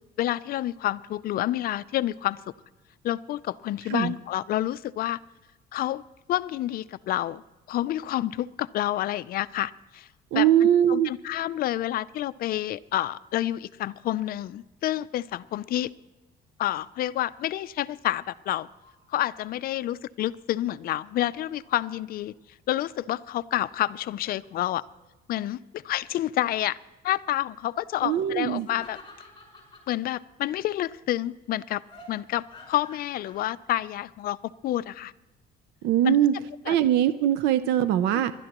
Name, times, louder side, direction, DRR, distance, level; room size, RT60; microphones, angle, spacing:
voice 1, 0.2-2.4 3.0-5.2 5.7-6.0 6.3-7.4 7.7-10.1 10.3-10.5 10.9-15.9 16.6-18.7 19.1-22.3 22.7-24.8 25.3-26.8 27.0-29.0 29.9-31.8 32.1-35.1 36.0-36.2 36.7-36.8 38.1-38.2, left 13 dB, 60° left, 15 dB, 0.5 m, -29 dB
voice 2, 10.3-11.1 28.0-28.7 35.8-36.3 36.7-38.3, right 11 dB, 85° right, 12 dB, 0.6 m, -21 dB
sound 1, 18.6-19.4 20.7-22.4 23.7-24.1 24.4-25.1 28.5-29.9 31.9-33.4, left 2 dB, 30° left, 5.2 m, -52 dB
28.5 x 12.0 x 3.0 m, 1.0 s
cardioid pair, 110°, 17 cm